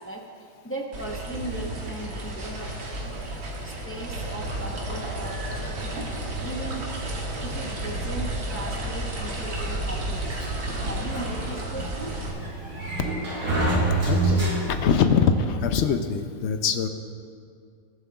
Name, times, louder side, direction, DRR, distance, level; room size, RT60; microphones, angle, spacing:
voice 1, 0.0-2.8 3.6-6.9 7.4-10.4 10.8-12.2, right 1 dB, 15° left, -1 dB, 0.5 m, -38 dB
sound 1, 0.9-12.3, right 1 dB, 80° right, 1.8 m, -32 dB
Sliding door, 10.4-15.0, right 2 dB, 65° right, 2.3 m, -27 dB
voice 2, 14.0-16.9, left 6 dB, 70° left, 8 dB, 0.7 m, -23 dB
19.0 x 7.4 x 2.3 m, 2.3 s
omnidirectional pair, 1.6 m